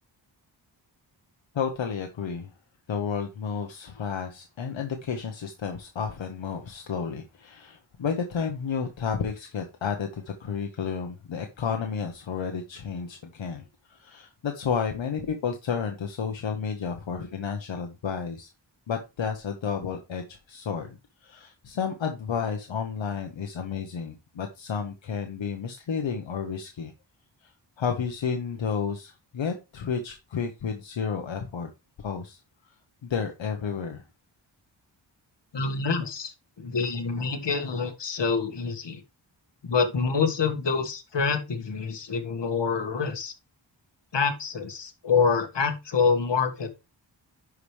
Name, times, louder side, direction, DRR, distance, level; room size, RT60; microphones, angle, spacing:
voice 1, 1.5-2.5 2.9-18.5 18.9-26.9 27.4-27.5 27.8-31.7 32.0-32.4 33.0-34.0, left 6 dB, 80° left, 1.1 m, -31 dB
voice 2, 35.5-39.0 39.6-43.3 44.1-46.7, left 5 dB, 65° left, 1.8 m, -26 dB
11.0 x 5.0 x 3.2 m
wide cardioid pair, 90°, 45 cm